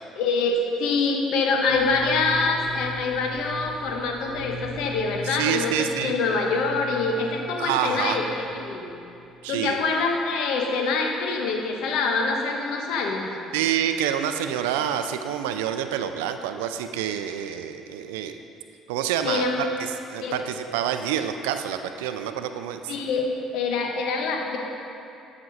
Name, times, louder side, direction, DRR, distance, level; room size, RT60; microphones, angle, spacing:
voice 1, 0.2-8.3 8.5-8.9 9.5-13.3 19.2-19.7 20.2-20.4 22.9-23.3 23.5-24.6, left 4 dB, 70° left, 2 dB, 1.2 m, -25 dB
sound 1, 1.6-9.4, equal, 65° right, 1.1 m, -40 dB
voice 2, 5.2-6.1 7.6-8.2 9.4-9.8 13.5-18.4 18.9-19.7 20.1-22.9, right 9 dB, 85° right, 8 dB, 0.4 m, -27 dB
13.0 x 6.0 x 4.1 m, 2.7 s
hypercardioid pair, 65°, 0 cm